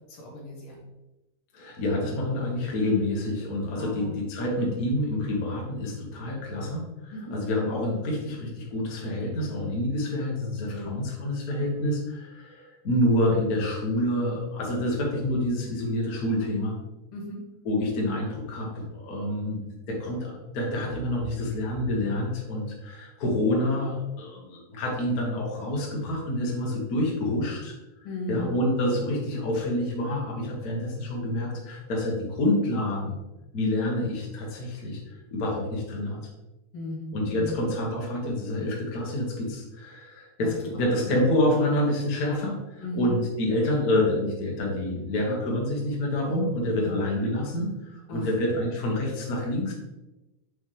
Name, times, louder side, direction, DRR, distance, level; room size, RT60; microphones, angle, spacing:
voice 1, 0.1-0.8 3.8-4.1 7.1-7.3 10.7-10.9 17.1-17.4 28.0-28.5 36.7-37.6 40.4-40.5 40.9-41.2 42.8-43.2 46.8-47.0 48.1-48.3, left 1 dB, 55° left, -1 dB, 2.3 m, -36 dB
voice 2, 1.5-16.7 17.6-27.7 28.3-33.2 33.5-35.0 35.3-36.2 37.1-49.7, left 1 dB, 85° left, -2 dB, 0.8 m, -27 dB
6.0 x 5.7 x 3.3 m, 1.0 s
omnidirectional pair, 3.9 m